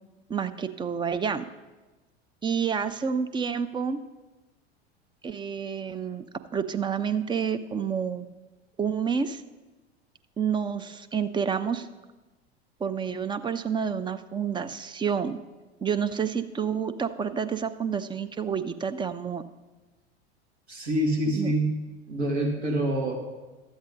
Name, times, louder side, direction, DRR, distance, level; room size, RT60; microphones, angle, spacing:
voice 1, 0.3-1.4 2.4-4.0 5.2-6.3 6.5-8.3 8.8-9.4 10.4-11.9 12.8-15.4 15.8-19.4 21.3-21.5, right 7 dB, 15° right, 10 dB, 0.5 m, -29 dB
voice 2, 20.7-21.7 22.1-23.2, right 1 dB, 75° right, -2 dB, 2.5 m, -26 dB
13.0 x 8.0 x 4.0 m, 1.2 s
figure-of-eight pair, 80°, 32 cm